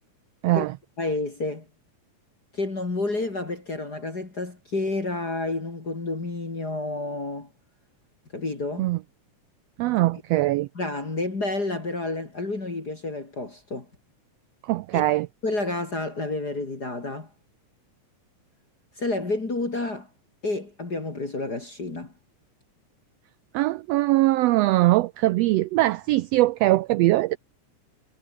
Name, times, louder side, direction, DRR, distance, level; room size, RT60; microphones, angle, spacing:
voice 1, 0.4-0.8 8.8-9.0 9.8-10.7 14.6-15.3 23.5-27.4, right 17 dB, 90° right, 1.4 m, -21 dB
voice 2, 1.0-1.7 2.5-7.5 8.3-8.9 10.8-13.9 14.9-15.0 15.4-17.3 19.0-20.1 20.4-22.1, left 2 dB, 30° left, 3.9 m, -30 dB
omnidirectional pair, 3.5 m